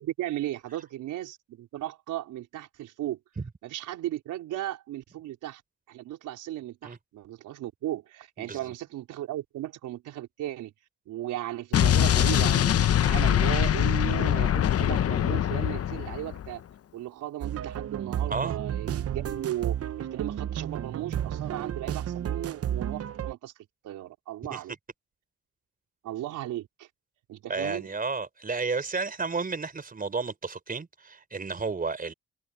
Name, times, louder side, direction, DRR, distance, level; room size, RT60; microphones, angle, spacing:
voice 1, 0.0-3.2 3.6-5.6 5.9-10.7 11.1-16.6 16.9-23.5 23.8-24.7 26.0-26.9 27.3-27.9, right 14 dB, 85° right, 4.6 m, -36 dB
Explosion, 11.7-16.5, left 10 dB, 50° left, 0.9 m, -23 dB
sound 1, 17.4-23.3, right 10 dB, 50° right, 1.0 m, -32 dB
voice 2, 27.5-32.1, right 4 dB, 30° right, 4.5 m, -32 dB
cardioid pair, 90°, 30 cm